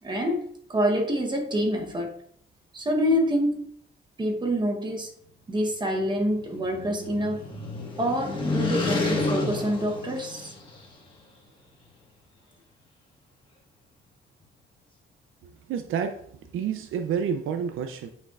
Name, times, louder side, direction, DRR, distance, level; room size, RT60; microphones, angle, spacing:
voice 1, 0.0-2.2 2.7-3.7 4.2-5.1 5.5-7.4 8.0-10.5, equal, 20° right, 0.9 m, -26 dB
sound 1, 6.1-10.9, left 2 dB, 25° left, 1.4 m, -30 dB
voice 2, 15.4-16.2 16.5-18.1, right 7 dB, 90° right, 0.5 m, -29 dB
8.0 x 5.4 x 2.4 m
cardioid pair, 140°, 20 cm